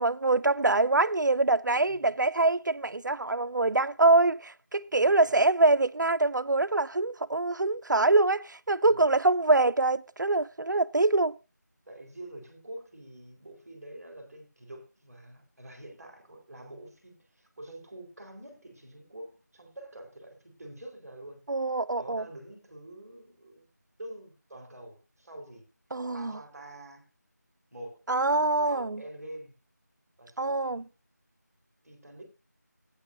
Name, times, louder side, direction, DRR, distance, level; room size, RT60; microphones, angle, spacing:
voice 1, 0.0-11.3 21.5-22.2 25.9-26.3 28.1-29.0 30.4-30.8, right 2 dB, 85° right, 0.5 m, -24 dB
voice 2, 5.0-5.4 8.8-9.2 11.8-21.5 21.9-23.7 24.0-25.7 26.1-27.1 27.7-28.0 28.7-29.6 30.2-30.8 31.8-32.2, right 1 dB, 5° right, 2.9 m, -46 dB
15.0 x 8.9 x 2.6 m
figure-of-eight pair, 175°, 10 cm